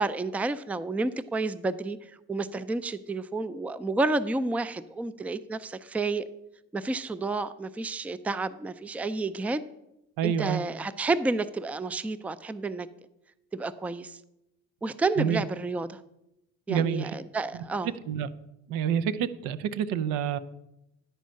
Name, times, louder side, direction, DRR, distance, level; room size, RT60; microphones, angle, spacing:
voice 1, 0.0-2.0 2.3-6.3 6.7-9.6 10.2-12.9 13.5-14.2 14.8-16.0 16.7-17.9, right 3 dB, 5° right, 16 dB, 0.3 m, -30 dB
voice 2, 10.2-10.6 15.2-15.4 16.7-17.1 17.5-17.6 18.1-18.3 18.7-20.4, right 8 dB, 85° right, 14 dB, 0.6 m, -28 dB
10.5 x 4.5 x 6.3 m, 0.89 s
supercardioid pair, 85°, 33 cm